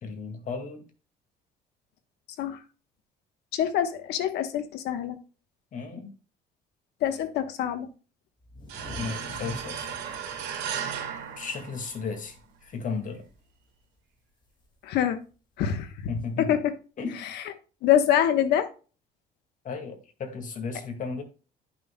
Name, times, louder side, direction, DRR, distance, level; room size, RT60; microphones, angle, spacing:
voice 1, 0.0-0.9 5.7-6.1 8.9-10.0 11.4-13.2 16.1-16.6 17.0-17.2 19.6-21.2, left 4 dB, 50° left, 2.0 m, -35 dB
voice 2, 3.5-5.2 7.0-7.9 14.8-15.2 15.6-15.9 16.4-16.7 17.2-17.4 17.8-18.7, left 10 dB, 80° left, 1.2 m, -25 dB
sound 1, 8.4-12.2 12.5-12.6 13.0-13.5 14.6-14.7 15.7-15.8, left 2 dB, 25° left, 2.3 m, -45 dB
sound 2, 8.7-12.3, right 8 dB, 85° right, 2.2 m, -35 dB
10.5 x 6.2 x 2.2 m
cardioid pair, 110°, 17 cm